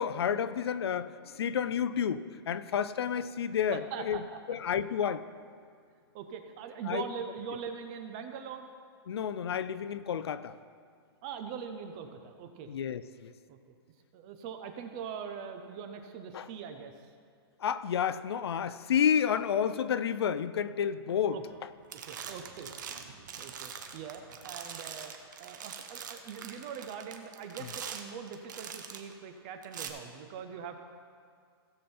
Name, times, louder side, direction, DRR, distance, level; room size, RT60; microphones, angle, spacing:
voice 1, 0.0-4.2 4.5-5.2 6.9-7.1 9.1-10.5 12.7-13.3 16.3-16.5 17.6-21.4, left 8 dB, 75° left, 14 dB, 0.5 m, -30 dB
voice 2, 3.7-4.2 6.1-8.7 11.2-12.7 13.5-13.6 14.1-16.9 21.3-21.4 22.1-22.7 23.0-25.1 25.4-30.8, right 7 dB, 15° right, 7 dB, 0.3 m, -42 dB
sound 1, 21.4-21.6 21.9-29.1 29.6-29.9, right 7 dB, 45° right, 0.9 m, -43 dB
16.0 x 7.0 x 4.3 m, 2.2 s
hypercardioid pair, 180°, 13 cm